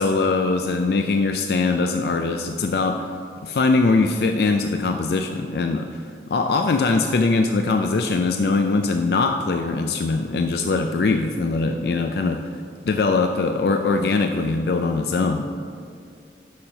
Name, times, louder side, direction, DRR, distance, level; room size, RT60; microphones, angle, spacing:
voice 1, 0.0-3.1 3.4-6.0 6.3-12.4 12.9-15.6, left 3 dB, 60° left, 5 dB, 0.4 m, -21 dB
6.7 x 5.7 x 5.7 m, 2.3 s
head